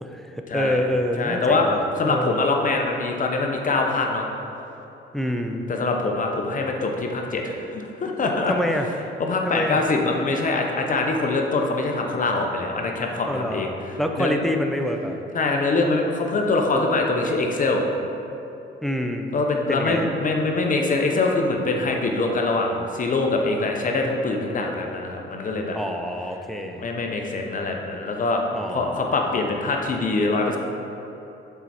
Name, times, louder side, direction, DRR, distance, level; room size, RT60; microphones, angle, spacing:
voice 1, 0.0-2.4 5.1-5.6 8.5-8.9 9.5-9.8 13.2-15.2 18.8-19.3 19.7-20.1 25.7-26.9 28.5-29.3, equal, ahead, 3 dB, 0.5 m, -27 dB
voice 2, 1.2-1.7 2.0-4.3 5.7-8.5 9.2-14.3 15.3-17.9 19.3-25.8 26.8-28.4 28.7-30.6, left 3 dB, 40° left, 1 dB, 0.8 m, -24 dB
6.8 x 4.5 x 4.2 m, 2.9 s
cardioid pair, 90°, 20 cm